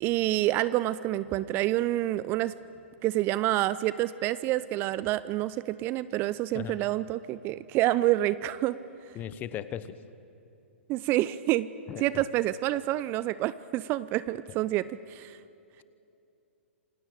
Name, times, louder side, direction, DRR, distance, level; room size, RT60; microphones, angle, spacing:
voice 1, 0.0-2.5 3.0-8.8 10.9-11.7 12.0-15.4, right 15 dB, 30° right, 17 dB, 0.6 m, -28 dB
voice 2, 9.1-10.0 11.9-12.2, left 10 dB, 25° left, 15 dB, 1.0 m, -37 dB
27.5 x 17.0 x 9.1 m, 2.7 s
figure-of-eight pair, 115°, 7 cm